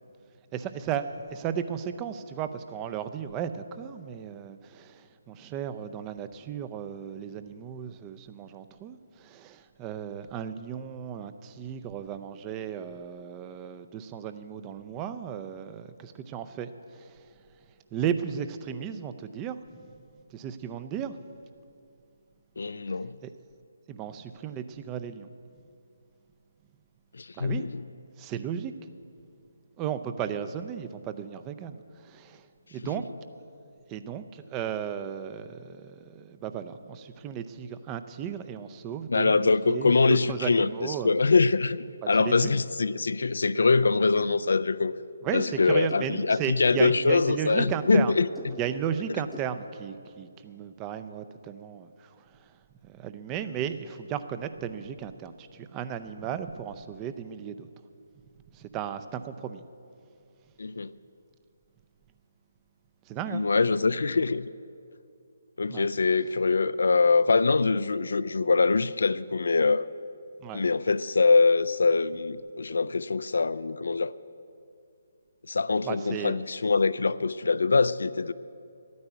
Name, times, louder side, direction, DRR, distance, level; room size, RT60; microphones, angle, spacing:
voice 1, 0.5-17.3 17.9-19.9 20.3-21.2 23.2-23.3 23.9-25.3 27.3-27.6 28.2-28.7 29.8-33.0 33.9-41.2 42.2-42.5 45.2-48.2 48.6-52.5 52.8-57.7 58.5-59.6 63.1-63.4 65.7-65.9 70.4-70.6 75.8-76.4, right 8 dB, 20° right, 0.5 m, -35 dB
voice 2, 22.6-23.2 27.1-27.8 39.1-44.9 45.3-48.3 60.6-60.9 63.3-64.5 65.6-69.9 70.5-74.1 75.5-78.3, left 4 dB, 65° left, 0.4 m, -24 dB
sound 1, 44.9-49.4, right 1 dB, ahead, 0.9 m, -46 dB
11.5 x 9.5 x 8.1 m
figure-of-eight pair, 140°, 0 cm